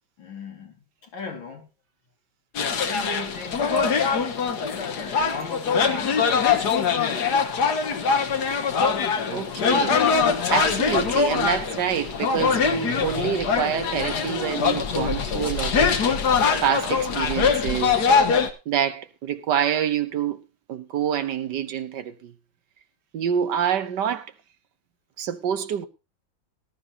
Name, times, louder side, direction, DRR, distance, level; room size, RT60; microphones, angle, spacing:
voice 1, 0.2-0.7 1.0-1.7 2.8-4.2 4.7-6.9, left 4 dB, 80° left, 3.0 m, -37 dB
sound 1, 2.5-18.5, left 6 dB, 60° left, 1.8 m, -23 dB
voice 2, 9.3-10.0 10.5-16.0 16.6-18.0 18.7-20.4 20.7-22.3 23.1-24.3 25.2-25.9, right 9 dB, 65° right, 1.4 m, -27 dB
19.0 x 12.0 x 2.9 m
omnidirectional pair, 2.1 m